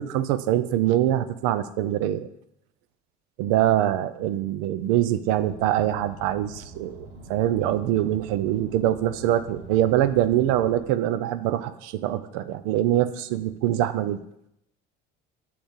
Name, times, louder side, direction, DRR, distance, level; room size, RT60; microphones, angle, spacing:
voice 1, 0.0-2.3 3.4-14.2, right 12 dB, 90° right, 13 dB, 0.5 m, -24 dB
Car, 5.3-10.8, right 3 dB, 40° right, 1.2 m, -44 dB
7.9 x 3.4 x 5.2 m, 0.79 s
cardioid pair, 160°, 18 cm